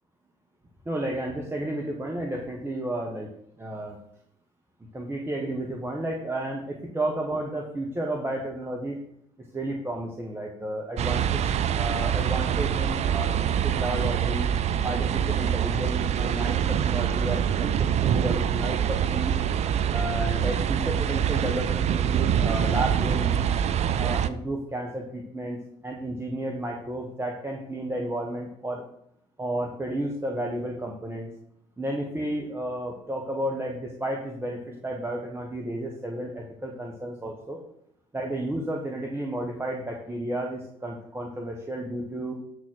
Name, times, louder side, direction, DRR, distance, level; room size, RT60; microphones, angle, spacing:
voice 1, 0.8-3.3 3.6-4.0 4.9-9.0 9.5-11.4 11.8-14.5 14.8-19.4 19.9-23.4 24.0-25.6 25.8-28.8 29.4-31.3 31.8-37.6 38.1-42.3, right 1 dB, 15° right, 0 dB, 1.4 m, -32 dB
sound 1, 11.0-24.3, right 9 dB, 50° right, 0.5 m, -25 dB
8.3 x 4.1 x 6.2 m, 0.72 s
hypercardioid pair, 70°, 15 cm